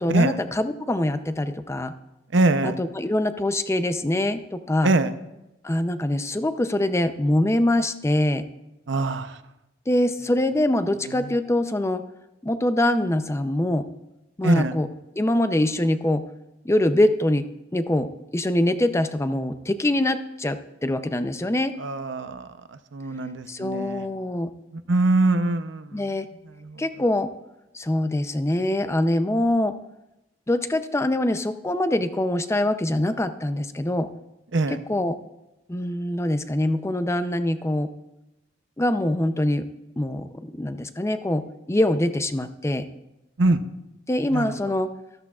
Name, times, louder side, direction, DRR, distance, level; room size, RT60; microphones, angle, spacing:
voice 1, 0.0-1.9 2.6-4.9 5.6-8.4 9.9-12.0 12.4-13.9 14.4-14.9 15.2-16.2 16.6-21.8 23.5-24.5 25.9-26.3 26.8-27.3 27.7-29.8 30.5-34.1 34.7-35.2 35.7-37.9 38.8-39.7 40.0-42.9 44.1-44.9, left 1 dB, 15° left, 10 dB, 0.6 m, -24 dB
voice 2, 2.3-2.7 4.8-5.1 8.9-9.4 11.1-11.3 14.4-14.7 21.8-22.5 22.9-24.0 24.9-26.0 26.6-26.8 34.5-34.8 43.4-43.6 44.3-44.5, right 2 dB, 70° right, 10 dB, 0.7 m, -23 dB
14.0 x 13.5 x 2.4 m, 0.94 s
head